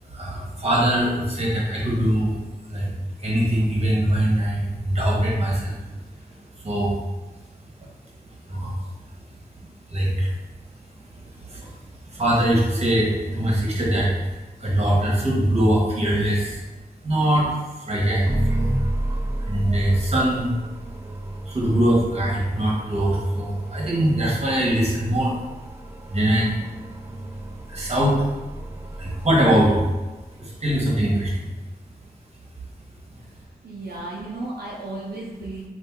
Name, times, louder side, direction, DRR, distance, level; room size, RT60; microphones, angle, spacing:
voice 1, 0.1-2.4 2.7-2.9 3.2-5.8 6.6-7.0 8.5-8.8 9.9-10.3 11.2-11.7 12.1-14.3 14.6-16.6 17.0-17.5 17.9-18.7 19.4-20.5 21.5-25.4 26.1-26.8 27.7-28.3 29.0-29.9 30.4-31.4, right 1 dB, 40° right, -4 dB, 1.0 m, -22 dB
sound 1, 18.3-30.4, right 1 dB, 15° right, 0.3 m, -32 dB
voice 2, 33.2-35.7, right 2 dB, 80° right, -4 dB, 0.5 m, -35 dB
2.8 x 2.5 x 3.5 m, 1.1 s
wide cardioid pair, 60°, 16 cm